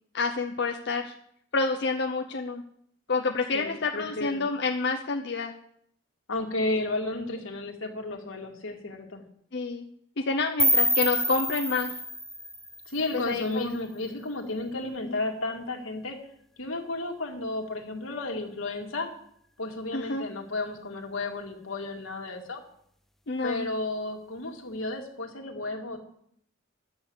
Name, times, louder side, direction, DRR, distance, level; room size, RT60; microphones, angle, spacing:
voice 1, 0.1-1.1 1.5-2.6 3.1-5.5 9.5-9.8 10.3-11.9 13.3-13.7 19.9-20.2 23.3-23.7, left 4 dB, 55° left, 3 dB, 0.7 m, -28 dB
voice 2, 3.5-4.4 6.3-9.2 12.9-16.2 16.6-19.1 19.6-22.6 23.4-26.0, left 2 dB, 80° left, 2 dB, 2.1 m, -33 dB
sound 1, 10.6-13.5, left 1 dB, ahead, 0.4 m, -27 dB
11.0 x 6.9 x 8.0 m, 0.69 s
head